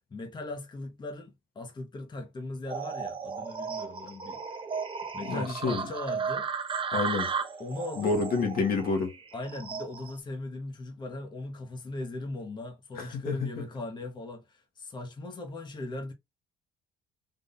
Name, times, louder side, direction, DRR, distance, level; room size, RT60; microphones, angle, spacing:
voice 1, 0.1-4.4 5.1-6.5 7.6-8.1 9.3-16.1, left 2 dB, 25° left, 1.0 m, -38 dB
sound 1, 2.7-10.2, right 5 dB, 30° right, 0.7 m, -35 dB
voice 2, 5.2-5.9 6.9-7.3 8.0-9.2 13.0-13.6, left 4 dB, 60° left, 1.4 m, -29 dB
3.7 x 2.7 x 3.9 m
cardioid pair, 110°, 17 cm